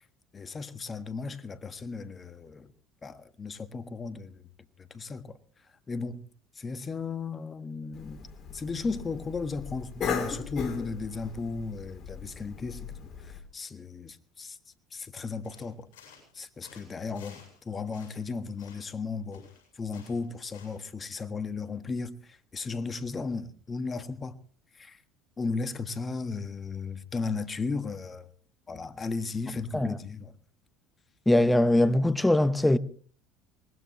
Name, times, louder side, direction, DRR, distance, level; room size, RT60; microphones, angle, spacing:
voice 1, 0.3-2.7 3.0-4.4 4.8-5.4 5.9-6.3 6.5-12.9 13.2-14.6 14.9-15.9 16.3-19.4 19.8-24.4 24.8-25.0 25.4-28.3 28.7-30.3, left 4 dB, 30° left, 1.5 m, -35 dB
Cough, 7.9-13.4, left 6 dB, 50° left, 3.3 m, -38 dB
sound 1, 15.4-16.4 16.6-17.6 17.9-19.0 19.3-20.9, left 6 dB, 80° left, 7.7 m, -55 dB
voice 2, 31.3-32.8, left 1 dB, 10° left, 0.9 m, -22 dB
23.5 x 19.5 x 3.1 m
hypercardioid pair, 75°, 0 cm